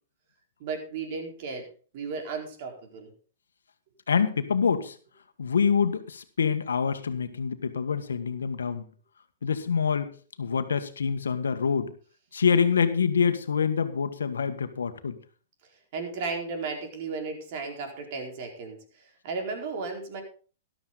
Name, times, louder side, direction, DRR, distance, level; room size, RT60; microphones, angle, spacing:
voice 1, 0.6-1.7 1.9-3.1 15.9-20.2, right 4 dB, 50° right, 3 dB, 4.4 m, -35 dB
voice 2, 4.1-4.9 5.4-8.9 9.4-10.1 10.4-11.9 12.3-15.2, left 6 dB, 85° left, 10 dB, 1.4 m, -26 dB
13.5 x 12.0 x 4.0 m, 0.39 s
hypercardioid pair, 125°, 0 cm